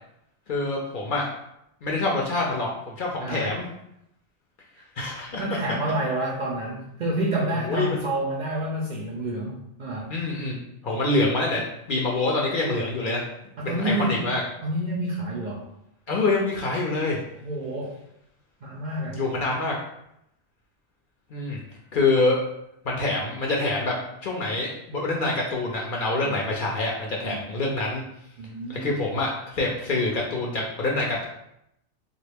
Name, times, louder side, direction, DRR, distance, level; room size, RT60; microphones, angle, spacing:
voice 1, 0.5-1.3 1.8-3.7 5.0-5.6 7.7-8.0 10.1-10.6 10.8-13.3 13.6-14.4 16.1-17.2 19.1-19.8 21.3-21.6 21.9-22.4 22.9-24.0 24.2-28.0 28.7-31.3, left 2 dB, 60° left, -2 dB, 0.6 m, -26 dB
voice 2, 3.2-3.6 5.4-10.1 13.6-14.3 14.6-15.6 17.4-17.9 18.6-19.2 26.2-26.4 27.2-27.4 28.4-28.9, right 1 dB, 60° right, -4 dB, 0.5 m, -29 dB
3.1 x 2.3 x 3.3 m, 0.79 s
omnidirectional pair, 1.2 m